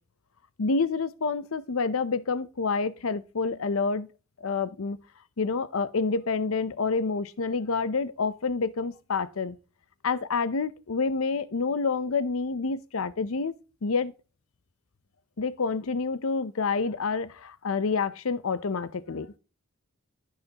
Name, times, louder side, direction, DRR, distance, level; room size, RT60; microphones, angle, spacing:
voice 1, 0.6-4.1 4.4-5.0 5.4-9.6 10.0-13.5 13.8-14.1 15.4-19.3, left 4 dB, 85° left, 0.7 m, -28 dB
14.5 x 5.7 x 2.9 m
head